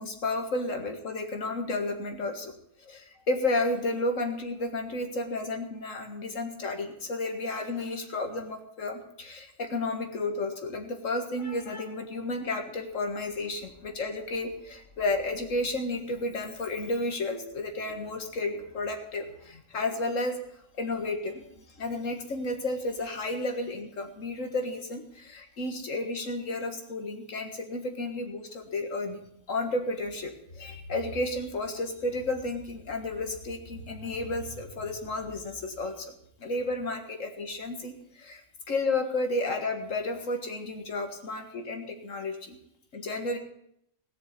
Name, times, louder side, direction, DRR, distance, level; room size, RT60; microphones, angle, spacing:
voice 1, 0.0-2.5 2.8-20.4 20.8-29.2 29.5-36.1 36.4-42.6 42.9-43.4, left 2 dB, 80° left, 5 dB, 2.1 m, -32 dB
16.5 x 6.7 x 8.3 m, 0.74 s
omnidirectional pair, 1.3 m